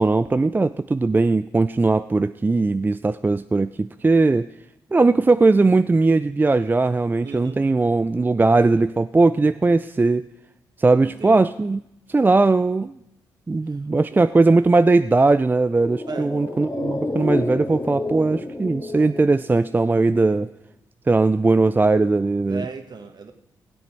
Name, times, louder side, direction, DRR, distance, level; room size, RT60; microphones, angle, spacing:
voice 1, 0.0-4.5 4.9-10.3 10.8-11.8 12.1-12.9 13.5-20.5 21.1-22.7, right 3 dB, 20° right, 12 dB, 0.4 m, -19 dB
voice 2, 7.2-7.6 11.0-11.4 13.6-13.8 14.1-14.3 16.1-16.3 22.5-23.3, right 4 dB, 50° right, 6 dB, 1.5 m, -36 dB
sound 1, 15.7-20.2 20.5-20.6, left 2 dB, 30° left, 2.4 m, -30 dB
16.0 x 7.7 x 4.5 m, 0.81 s
hypercardioid pair, 45°, 9 cm